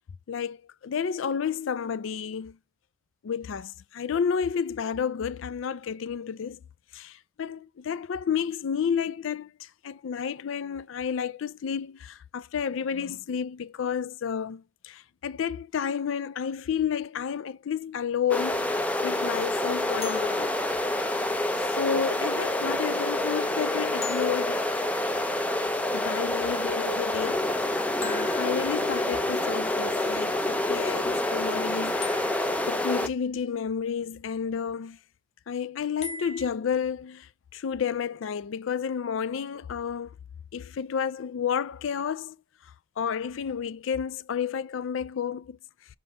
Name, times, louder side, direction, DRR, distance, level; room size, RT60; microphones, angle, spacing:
voice 1, 0.3-2.6 3.2-6.6 6.9-18.7 19.0-20.6 21.6-24.7 25.9-27.4 28.0-32.0 32.7-35.0 35.5-40.1 40.5-42.4 42.6-45.6, left 7 dB, 75° left, 0.4 m, -31 dB
sound 1, 18.3-33.1, left 1 dB, 5° left, 0.4 m, -27 dB
sound 2, 20.0-22.0 24.0-25.8 28.0-29.4 32.0-33.3 36.0-36.5, left 5 dB, 30° left, 0.8 m, -43 dB
5.9 x 3.7 x 4.9 m
head